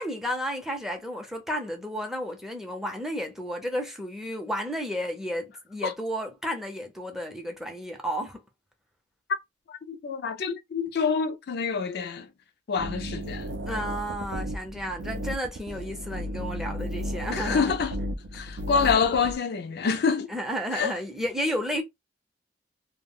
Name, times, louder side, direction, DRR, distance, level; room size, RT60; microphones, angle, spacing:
voice 1, 0.0-8.4 13.7-17.8 20.3-21.8, equal, ahead, 0.6 m, -32 dB
voice 2, 9.7-12.3 12.7-13.5 16.8-16.9 17.3-18.0 18.3-20.3 20.7-20.9, left 5 dB, 60° left, 0.4 m, -27 dB
sound 1, 12.8-19.3, equal, 70° right, 0.5 m, -34 dB
2.3 x 2.1 x 3.5 m
head